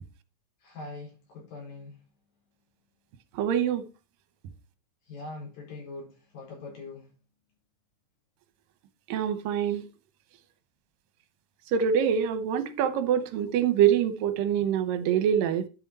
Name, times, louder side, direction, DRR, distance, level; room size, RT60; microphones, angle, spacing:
voice 1, 0.6-1.9 5.1-7.0, left 3 dB, 70° left, 6.3 m, -42 dB
voice 2, 3.4-3.8 9.1-9.8 11.7-15.7, right 9 dB, 75° right, 2.5 m, -25 dB
10.0 x 6.3 x 4.1 m
omnidirectional pair, 4.1 m